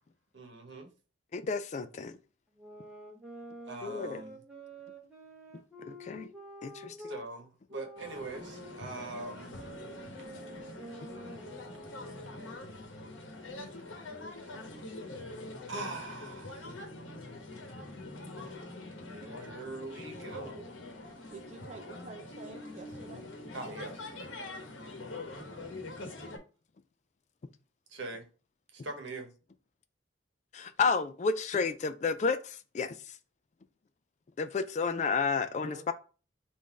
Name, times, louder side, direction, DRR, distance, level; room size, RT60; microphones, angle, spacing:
voice 1, 0.3-0.9 3.7-4.4 7.0-9.6 14.4-14.6 15.7-16.7 19.1-20.7 21.0-21.2 23.5-24.0 27.9-28.3 28.7-29.3, right 2 dB, 75° right, 1.0 m, -42 dB
voice 2, 1.3-2.1 3.8-4.2 5.8-6.3 6.6-7.0 30.5-33.0 34.4-35.9, left 5 dB, 40° left, 0.3 m, -31 dB
sound 1, 2.6-7.3 7.7-12.7, right 1 dB, 5° right, 0.9 m, -48 dB
sound 2, 8.0-26.4, left 2 dB, 90° left, 1.0 m, -44 dB
voice 3, 21.3-23.2 35.6-35.9, right 3 dB, 35° right, 0.5 m, -48 dB
3.7 x 2.6 x 4.6 m
head